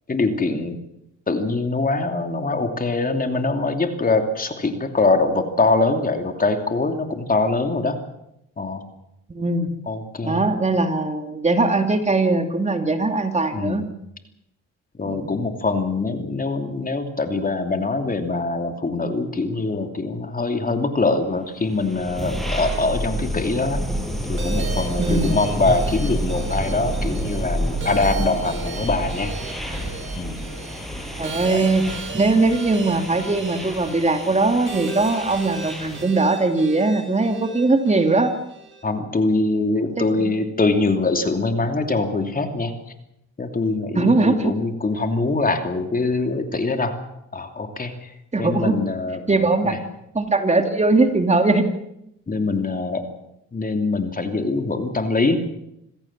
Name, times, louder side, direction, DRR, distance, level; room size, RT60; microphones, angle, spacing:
voice 1, 0.1-0.8 1.3-8.0 8.6-8.8 9.9-10.4 13.5-13.8 15.0-23.8 24.3-29.3 30.1-30.4 31.5-31.6 38.8-42.7 43.4-47.0 47.3-48.1 48.4-49.8 52.3-53.1 53.5-55.4, left 3 dB, 30° left, 6 dB, 2.9 m, -23 dB
voice 2, 9.3-9.7 10.2-13.8 15.0-15.3 25.0-25.4 31.2-31.9 32.1-38.3 40.0-40.3 43.9-44.5 48.3-48.8 49.3-49.8 50.1-51.7, right 3 dB, 20° right, 6 dB, 2.7 m, -20 dB
sound 1, 21.6-36.2, right 1 dB, ahead, 6.8 m, -29 dB
sound 2, 24.4-38.8, right 4 dB, 40° right, 6.7 m, -36 dB
27.0 x 16.5 x 7.5 m, 0.82 s
cardioid pair, 90°, 30 cm